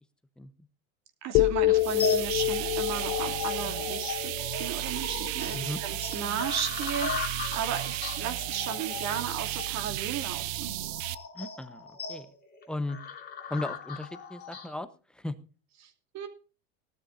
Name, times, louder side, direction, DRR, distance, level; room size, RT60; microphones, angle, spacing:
voice 1, 1.2-10.8 15.8-16.3, right 8 dB, 45° right, 5 dB, 2.8 m, -35 dB
sound 1, 1.3-5.4, left 17 dB, 50° left, 0.7 m, -28 dB
sound 2, 1.7-14.7, left 4 dB, 25° left, 3.1 m, -38 dB
sound 3, 1.8-11.1, right 16 dB, 80° right, 0.8 m, -34 dB
voice 2, 11.3-12.3 12.7-13.0 13.5-15.4, left 2 dB, ahead, 11 dB, 1.0 m, -36 dB
18.5 x 12.5 x 2.6 m, 0.36 s
supercardioid pair, 120°, 39 cm